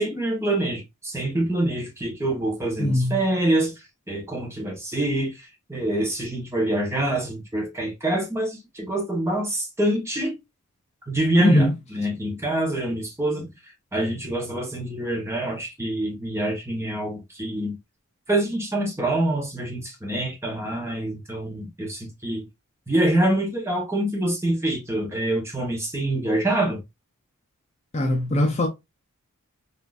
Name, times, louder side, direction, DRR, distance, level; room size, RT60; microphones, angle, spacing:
voice 1, 0.0-3.7 4.1-10.3 11.1-13.5 13.9-17.8 18.3-22.4 22.9-26.8, right 1 dB, 10° right, 0.9 m, -25 dB
voice 2, 2.8-3.2 11.4-11.7 27.9-28.7, left 1 dB, 30° left, 0.4 m, -21 dB
3.6 x 2.4 x 2.3 m
head